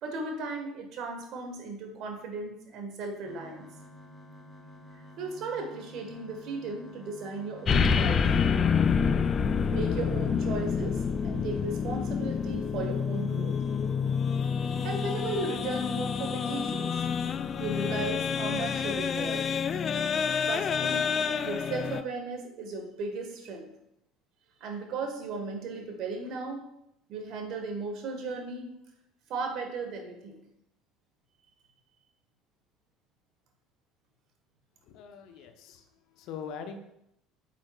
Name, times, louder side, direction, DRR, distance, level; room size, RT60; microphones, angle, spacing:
voice 1, 0.0-3.7 4.9-8.3 9.7-13.5 14.8-17.0 17.6-19.5 20.4-21.1 21.4-23.7 24.6-26.6 27.1-28.7 29.3-30.4, right 3 dB, 55° right, 4 dB, 1.4 m, -36 dB
sound 1, 3.2-19.3, left 1 dB, 25° right, 2.3 m, -50 dB
sound 2, 7.7-22.0, left 6 dB, 40° left, 0.3 m, -28 dB
voice 2, 34.8-36.8, left 7 dB, 60° left, 7 dB, 0.7 m, -42 dB
8.7 x 5.8 x 2.3 m, 0.80 s
figure-of-eight pair, 65°, 0 cm